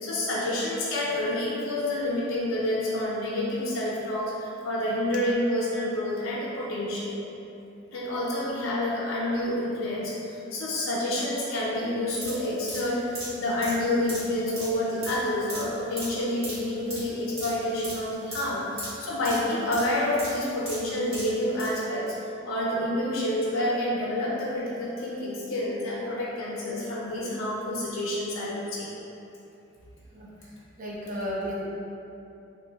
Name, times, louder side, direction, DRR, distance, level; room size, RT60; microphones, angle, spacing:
voice 1, 0.0-7.2 7.9-28.9, left 1 dB, 75° left, -6 dB, 0.5 m, -28 dB
sound 1, 12.1-21.7 22.1-22.2, right 1 dB, 80° right, 1.3 m, -39 dB
voice 2, 30.1-31.7, equal, 40° right, -5 dB, 0.5 m, -34 dB
3.6 x 2.2 x 2.8 m, 2.8 s
head